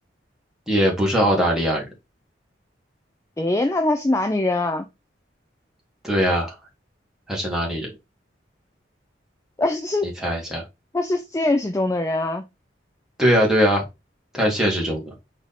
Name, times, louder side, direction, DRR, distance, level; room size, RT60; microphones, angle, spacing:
voice 1, 0.7-1.9 6.0-6.5 7.3-7.9 10.2-10.6 13.2-13.8 14.3-15.1, equal, 5° right, 1.5 m, -20 dB
voice 2, 3.4-4.9 9.6-10.1 10.9-12.4, left 2 dB, 15° left, 0.4 m, -22 dB
4.7 x 2.7 x 4.0 m
head